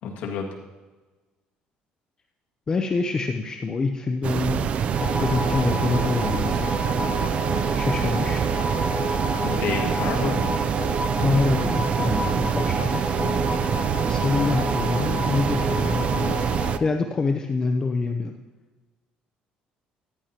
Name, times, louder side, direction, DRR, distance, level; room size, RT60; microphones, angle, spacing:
voice 1, 0.0-0.5 9.4-10.6, left 6 dB, 75° left, 1 dB, 1.8 m, -29 dB
voice 2, 2.7-4.7 5.0-6.7 7.7-8.4 11.2-13.6 14.1-18.3, left 3 dB, 25° left, 4 dB, 0.6 m, -26 dB
sound 1, 4.2-16.8, right 8 dB, 45° right, 0.4 m, -25 dB
sound 2, 4.9-16.8, equal, 25° right, 2.4 m, -30 dB
14.0 x 10.5 x 2.9 m, 1.2 s
cardioid pair, 140°, 3 cm